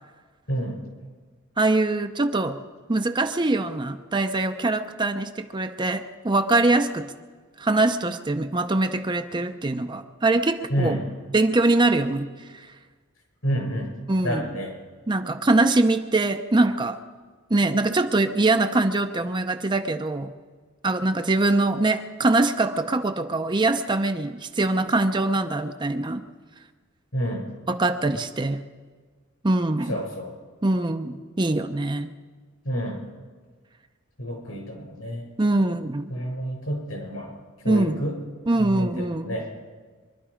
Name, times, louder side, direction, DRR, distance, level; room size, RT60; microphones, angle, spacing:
voice 1, 0.5-0.8 10.7-11.0 13.4-13.9 14.2-14.7 27.1-27.5 29.8-30.3 32.6-33.0 34.2-35.2 36.1-37.3 37.6-38.1 38.6-39.5, equal, 75° left, 0 dB, 6.8 m, -29 dB
voice 2, 1.6-2.6 2.9-7.1 7.6-11.0 11.3-12.3 12.5-12.7 14.1-14.4 15.1-17.0 17.5-20.3 20.8-26.2 27.7-28.6 29.4-30.0 30.6-32.1 35.4-36.1 37.7-38.0 38.5-39.4, right 2 dB, 20° right, 8 dB, 0.6 m, -23 dB
23.5 x 12.0 x 5.0 m, 1.4 s
head